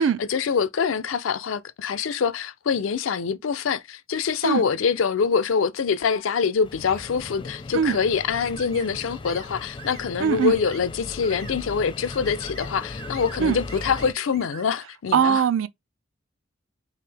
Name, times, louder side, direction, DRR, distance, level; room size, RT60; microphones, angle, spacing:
voice 1, 0.0-15.4, left 6 dB, 85° left, 0.4 m, -25 dB
sound 1, 6.6-14.1, left 3 dB, 25° left, 0.4 m, -38 dB
sound 2, 6.8-7.1 7.9-8.1 8.4-8.9 9.2-9.5 9.8-10.1 10.4-10.8 11.2-11.6 12.1-12.7 13.0-13.4 13.7-14.7, right 6 dB, 35° right, 0.6 m, -44 dB
voice 2, 10.2-10.6 13.4-13.6 15.1-15.7, right 7 dB, 75° right, 0.3 m, -21 dB
3.5 x 2.7 x 3.3 m
head